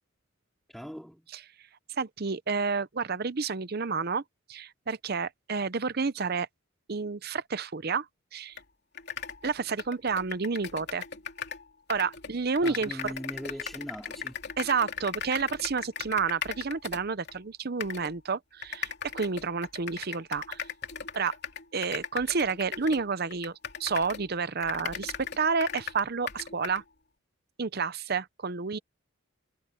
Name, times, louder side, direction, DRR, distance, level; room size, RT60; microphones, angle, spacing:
voice 1, 0.7-1.3 12.6-14.4, equal, ahead, 4.0 m, -40 dB
voice 2, 2.0-4.2 4.5-6.5 6.9-8.1 8.3-8.6 9.4-11.0 11.9-13.1 14.6-20.6 21.1-21.3 21.7-23.5 23.8-26.8 27.6-28.8, right 5 dB, 45° right, 0.7 m, -30 dB
sound 1, 8.6-8.7 8.9-11.6 11.9-17.4 17.8-18.1 18.6-24.3 24.6-26.8, left 7 dB, 50° left, 3.1 m, -38 dB
head